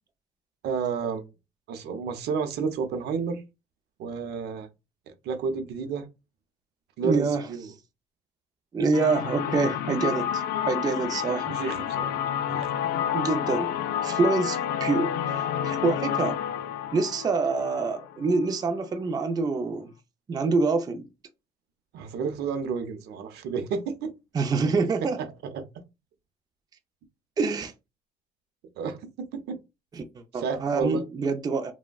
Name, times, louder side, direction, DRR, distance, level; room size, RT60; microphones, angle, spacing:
voice 1, 0.6-1.3 1.7-3.4 4.0-4.7 5.2-6.1 7.0-7.7 11.5-12.1 12.5-12.7 21.9-24.1 25.2-25.6 28.8-29.6 30.3-31.0, right 5 dB, 75° right, 0.6 m, -31 dB
voice 2, 7.0-7.5 8.7-11.6 13.1-13.7 14.0-16.4 16.9-19.9 20.3-21.1 24.3-25.2 27.4-27.7 30.0-30.1 30.3-31.7, right 4 dB, 25° right, 0.4 m, -26 dB
sound 1, 8.9-18.6, left 9 dB, 70° left, 0.4 m, -29 dB
3.3 x 2.1 x 2.2 m
cardioid pair, 110°, 17 cm